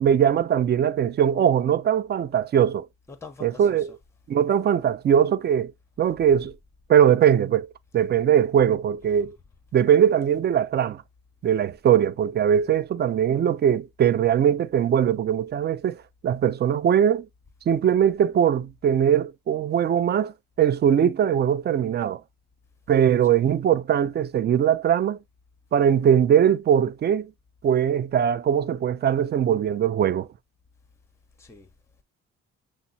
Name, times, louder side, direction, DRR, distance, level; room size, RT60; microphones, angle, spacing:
voice 1, 0.0-2.9 3.4-4.0 4.3-5.7 6.0-6.5 6.9-9.4 9.7-11.0 11.4-16.0 16.2-17.3 17.7-20.3 20.6-22.2 22.9-25.2 25.7-27.3 27.6-30.3, right 9 dB, 35° right, 0.4 m, -21 dB
voice 2, 3.1-4.0 9.1-9.2 23.2-23.6 31.4-31.7, left 4 dB, 10° left, 0.8 m, -45 dB
5.8 x 2.1 x 4.0 m
cardioid pair, 90°, 30 cm